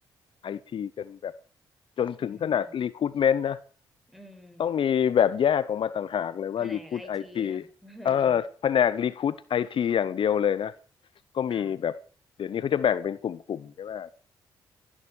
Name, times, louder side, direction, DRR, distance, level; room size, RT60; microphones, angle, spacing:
voice 1, 0.4-1.3 2.0-3.6 4.6-7.6 8.0-10.7 11.3-12.0 12.4-14.1, left 8 dB, 55° left, 0.7 m, -26 dB
voice 2, 2.2-2.7 4.1-4.7 6.6-8.4 11.5-11.8, equal, ahead, 5.0 m, -48 dB
16.0 x 10.0 x 6.2 m
hypercardioid pair, 50°, 10 cm